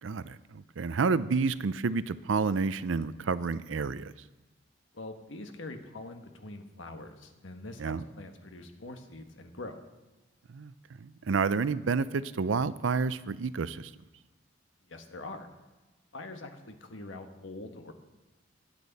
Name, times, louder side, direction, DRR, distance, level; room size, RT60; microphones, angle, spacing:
voice 1, 0.0-4.1 7.8-8.0 10.5-10.7 11.0-13.9, right 4 dB, 85° right, 16 dB, 0.5 m, -29 dB
voice 2, 4.9-9.8 14.9-15.5 16.1-17.9, left 2 dB, 85° left, 6 dB, 1.4 m, -44 dB
21.5 x 8.4 x 4.1 m, 1.1 s
head